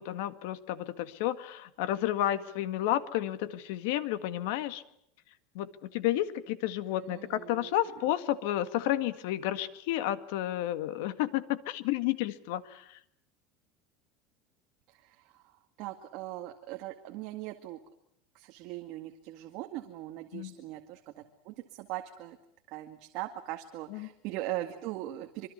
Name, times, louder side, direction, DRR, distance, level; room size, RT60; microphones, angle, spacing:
voice 1, 0.0-4.8 5.6-13.0 20.3-20.6 23.9-24.1, left 13 dB, 65° left, 12 dB, 1.9 m, -31 dB
voice 2, 7.0-7.8 14.9-17.8 18.3-22.4 22.7-25.5, right 15 dB, 45° right, 4 dB, 2.0 m, -40 dB
26.0 x 24.0 x 8.2 m, 0.74 s
cardioid pair, 175°, 0 cm